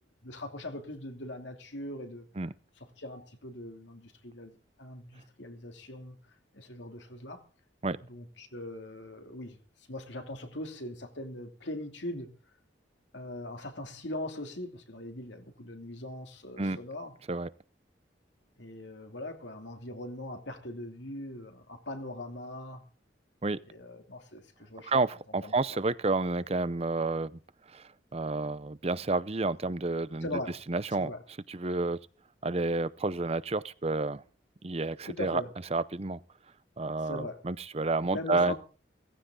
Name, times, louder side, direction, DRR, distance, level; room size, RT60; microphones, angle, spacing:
voice 1, 0.2-2.3 2.8-6.2 6.5-7.4 8.1-9.6 9.9-12.3 13.1-17.1 18.6-22.8 23.6-25.0 25.3-25.8 30.2-30.6 30.9-31.2 35.0-35.5 37.0-37.5 38.0-38.6, left 1 dB, 80° left, 2.9 m, -41 dB
voice 2, 24.9-27.3 27.7-30.3 30.7-31.1 31.5-32.0 32.4-34.2 34.6-35.4 35.7-36.2 36.8-38.5, right 3 dB, 35° right, 0.7 m, -30 dB
17.5 x 15.5 x 3.8 m
head